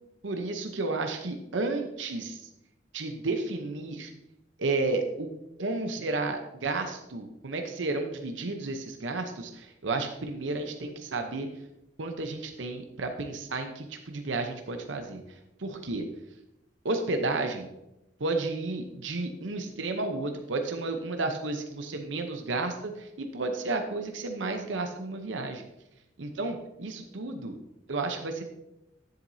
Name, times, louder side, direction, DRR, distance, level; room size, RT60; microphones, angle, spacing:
voice 1, 0.2-2.4 2.9-4.1 4.6-5.3 5.6-11.5 12.0-15.2 15.6-16.0 16.8-17.7 18.2-25.7 26.2-27.6 27.9-28.4, right 3 dB, 85° right, 5 dB, 0.8 m, -32 dB
10.5 x 7.9 x 2.7 m, 0.88 s
head